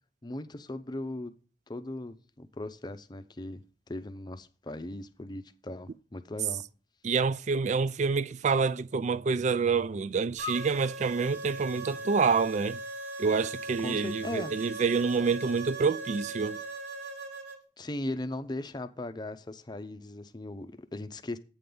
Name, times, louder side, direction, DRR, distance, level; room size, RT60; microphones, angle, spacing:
voice 1, 0.2-1.4 1.7-3.6 3.9-6.6 13.8-14.5 17.8-21.4, left 1 dB, 25° left, 0.6 m, -38 dB
voice 2, 7.0-12.8 13.2-16.6, right 5 dB, 40° right, 0.4 m, -27 dB
sound 1, 10.4-17.6, right 2 dB, 70° right, 1.9 m, -39 dB
8.6 x 3.9 x 6.8 m
head